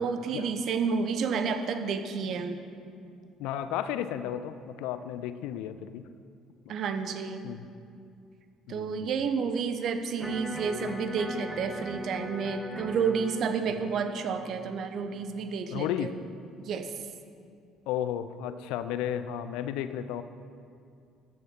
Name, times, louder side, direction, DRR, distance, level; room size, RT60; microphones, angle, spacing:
voice 1, 0.0-2.6 6.7-7.5 8.7-16.2 16.6-16.9, right 5 dB, 50° right, 8 dB, 0.9 m, -30 dB
voice 2, 3.4-6.1 7.4-7.7 8.7-9.3 15.7-16.1 17.9-20.2, left 10 dB, 65° left, 12 dB, 0.5 m, -33 dB
Electric guitar, 10.2-16.2, equal, ahead, 1.3 m, -41 dB
14.0 x 10.5 x 4.5 m, 2.4 s
figure-of-eight pair, 50°, 0 cm